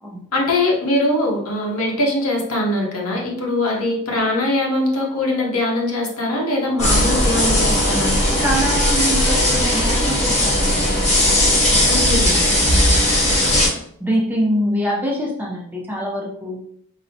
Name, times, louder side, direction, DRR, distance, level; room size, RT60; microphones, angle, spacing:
voice 1, 0.3-8.2 11.9-12.3, left 1 dB, 75° left, -2 dB, 0.9 m, -21 dB
sound 1, 6.8-13.7, left 1 dB, 30° left, 0.9 m, -17 dB
voice 2, 8.3-10.9 11.2-11.9 12.3-13.5 14.0-16.6, equal, 10° right, -3 dB, 0.5 m, -25 dB
4.0 x 2.1 x 2.6 m, 0.68 s
head